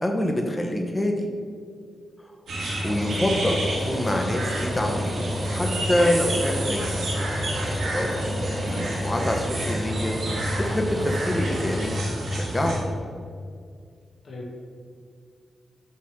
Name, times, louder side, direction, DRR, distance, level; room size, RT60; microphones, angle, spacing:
voice 1, 0.0-1.3 2.8-3.6 3.9-5.1 5.5-7.1 7.6-8.2 8.6-10.1 10.6-11.9 12.3-12.8, left 1 dB, 20° left, 2 dB, 0.8 m, -26 dB
sound 1, 2.5-12.8, equal, 90° right, 1.8 m, -28 dB
Rain, 2.9-12.0, equal, 5° right, 1.4 m, -34 dB
voice 2, 7.7-8.1 14.2-14.5, left 1 dB, 65° left, -4 dB, 1.3 m, -39 dB
8.2 x 3.1 x 5.8 m, 2.2 s
cardioid pair, 75°, 0 cm